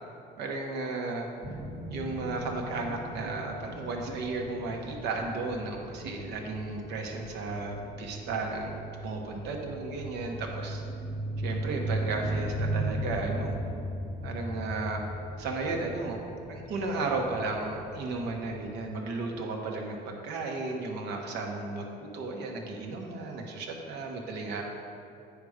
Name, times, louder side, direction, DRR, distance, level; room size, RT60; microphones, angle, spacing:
voice 1, 0.4-1.3 1.9-10.8 11.4-13.6 14.2-15.0 15.4-24.6, right 3 dB, 85° right, 1 dB, 1.2 m, -34 dB
sound 1, 1.4-18.9, right 1 dB, 65° right, 1.2 m, -37 dB
9.2 x 5.1 x 5.0 m, 2.6 s
cardioid pair, 110°, 17 cm